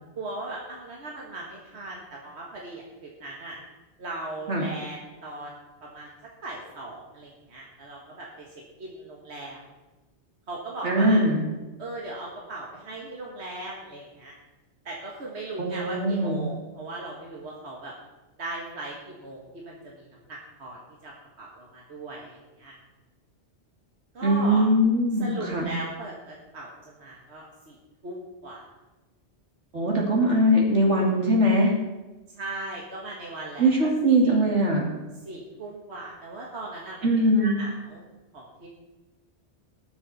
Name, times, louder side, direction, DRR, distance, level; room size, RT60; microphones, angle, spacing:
voice 1, 0.2-3.6 4.0-5.5 5.8-6.1 6.4-8.5 8.8-9.6 10.5-11.2 11.8-14.3 14.9-17.9 18.4-21.1 21.4-22.7 24.1-24.7 25.2-27.8 28.0-28.7 32.4-33.7 34.2-34.4 35.2-37.1 37.4-38.0 38.3-38.7, right 2 dB, 70° right, -3 dB, 2.0 m, -38 dB
voice 2, 10.8-11.4 15.6-16.4 24.2-25.7 29.7-31.7 33.6-34.9 37.0-37.6, equal, 90° right, -1 dB, 2.8 m, -21 dB
19.5 x 7.0 x 4.2 m, 1.1 s
omnidirectional pair, 1.2 m